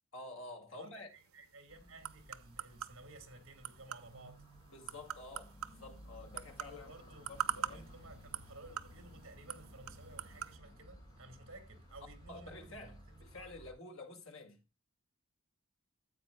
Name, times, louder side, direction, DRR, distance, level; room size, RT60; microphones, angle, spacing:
voice 1, 0.1-1.1 4.7-7.0 7.3-7.9 12.3-14.6, left 2 dB, 70° left, 2.3 m, -50 dB
voice 2, 0.7-4.4 6.7-13.5, right 2 dB, 65° right, 2.2 m, -55 dB
sound 1, 1.1-10.6, right 9 dB, 85° right, 0.8 m, -45 dB
sound 2, 1.7-13.7, equal, 20° left, 3.6 m, -57 dB
sound 3, 5.6-11.5, equal, 50° left, 6.2 m, -67 dB
14.5 x 8.5 x 2.3 m
head